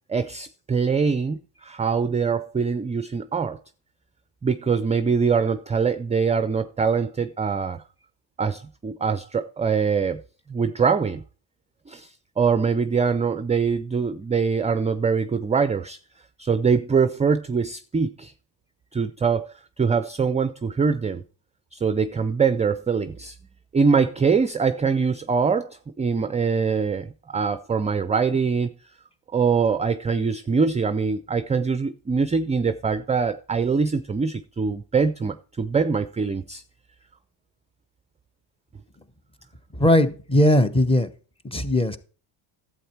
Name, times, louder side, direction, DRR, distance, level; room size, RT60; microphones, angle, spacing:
voice 1, 0.1-3.6 4.4-7.8 8.4-10.2 10.5-11.2 11.9-16.0 16.4-18.3 18.9-19.5 19.8-21.2 21.7-23.4 23.7-28.7 29.3-36.6, right 5 dB, 15° right, 0.4 m, -23 dB
voice 2, 39.7-41.1 41.4-42.0, left 1 dB, 10° left, 0.9 m, -19 dB
11.5 x 7.9 x 4.5 m
cardioid pair, 90°, 49 cm